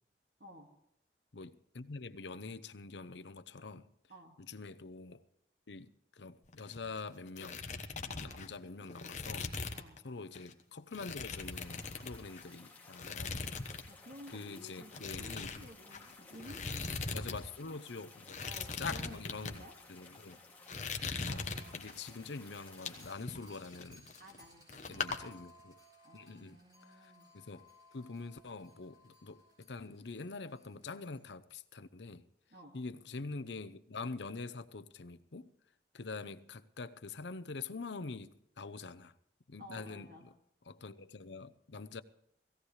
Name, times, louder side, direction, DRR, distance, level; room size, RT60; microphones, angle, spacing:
voice 1, 0.4-0.7 4.1-4.4 8.3-8.5 9.7-10.0 13.9-17.3 18.4-19.7 24.2-25.2 26.0-27.3 32.5-32.8 39.6-40.3, equal, 55° right, 2.1 m, -54 dB
voice 2, 1.3-3.9 4.4-5.2 5.7-7.6 8.2-9.5 10.0-13.4 14.3-15.7 16.5-16.6 17.1-18.4 18.8-20.4 21.2-24.1 24.9-25.8 26.1-26.6 26.9-27.6 27.9-32.2 32.7-35.5 35.9-39.1 39.5-40.1 40.7-42.0, left 4 dB, 85° left, 0.8 m, -45 dB
sound 1, 6.4-7.0 7.3-10.0 10.3-10.5 10.9-12.5 12.9-13.9 14.1-14.4 14.9-17.4 17.6-17.7 18.2-19.6 20.1-20.3 20.7-22.1 22.6-24.4 24.7-25.2, left 4 dB, 45° left, 1.3 m, -40 dB
sound 2, 11.3-23.2, left 3 dB, 10° left, 2.5 m, -57 dB
sound 3, 21.6-31.2, left 1 dB, 20° right, 6.4 m, -61 dB
17.5 x 17.0 x 3.3 m
head